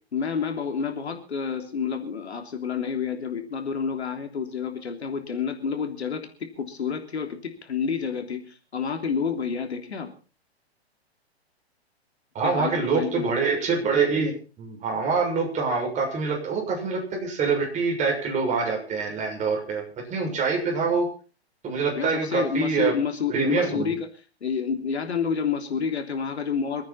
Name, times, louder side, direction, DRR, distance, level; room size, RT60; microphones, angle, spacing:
voice 1, 0.1-10.1 12.4-13.4 21.9-24.1 24.4-26.8, left 6 dB, 80° left, 5 dB, 3.3 m, -29 dB
voice 2, 12.3-19.8 20.1-21.1 21.6-22.9 23.3-23.9, right 4 dB, 20° right, 1 dB, 6.6 m, -25 dB
26.5 x 9.6 x 4.3 m, 0.36 s
hypercardioid pair, 120°, 32 cm